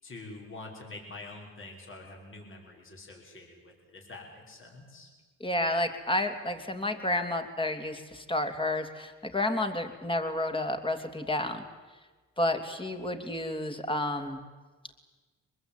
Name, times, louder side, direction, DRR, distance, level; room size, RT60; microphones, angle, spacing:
voice 1, 0.0-5.1, left 2 dB, 40° left, 0 dB, 5.9 m, -46 dB
voice 2, 5.4-11.6 12.4-14.4, left 1 dB, 15° left, 6 dB, 3.1 m, -30 dB
24.5 x 21.0 x 9.1 m, 1.3 s
cardioid pair, 90°, 30 cm